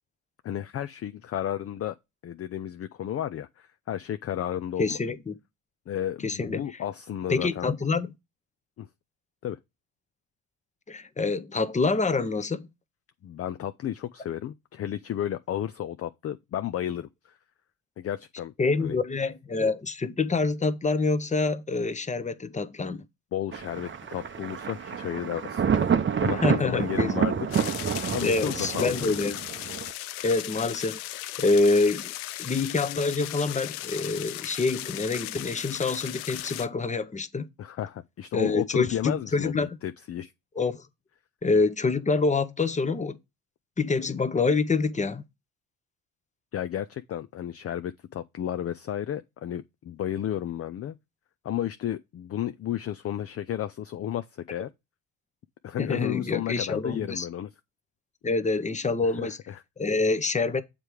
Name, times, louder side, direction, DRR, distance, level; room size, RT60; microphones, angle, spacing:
voice 1, 0.4-2.0 2.2-5.0 5.9-7.7 8.8-8.9 9.4-9.6 13.2-17.4 18.0-18.5 18.8-19.0 23.3-25.6 26.2-28.9 37.6-40.3 46.5-51.0 51.4-54.7 55.6-57.5 59.2-59.6, left 11 dB, 35° left, 0.4 m, -33 dB
voice 2, 4.8-5.3 6.2-6.6 7.3-8.1 10.9-12.7 18.6-23.0 26.4-27.1 28.2-29.4 30.2-31.0 31.4-32.1 32.4-37.5 38.3-39.8 40.6-40.8 41.4-43.2 43.8-45.2 55.8-57.3 58.2-59.4 59.8-60.6, left 3 dB, 15° left, 0.8 m, -26 dB
Thunder, 23.5-29.9, right 7 dB, 30° right, 0.7 m, -28 dB
sound 1, 27.5-36.7, left 16 dB, 90° left, 0.5 m, -37 dB
7.3 x 3.4 x 4.7 m
supercardioid pair, 65°, 43 cm